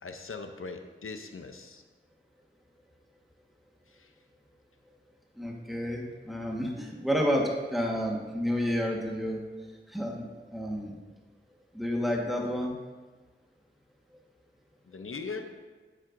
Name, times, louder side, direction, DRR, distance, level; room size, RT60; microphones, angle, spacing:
voice 1, 0.0-1.8 3.9-4.1 14.9-15.6, left 4 dB, 80° left, 6 dB, 0.6 m, -40 dB
voice 2, 5.4-9.4 9.9-10.3 10.5-10.9 11.7-12.7, equal, ahead, -1 dB, 1.4 m, -30 dB
10.5 x 7.5 x 2.6 m, 1.3 s
wide cardioid pair, 45°, 21 cm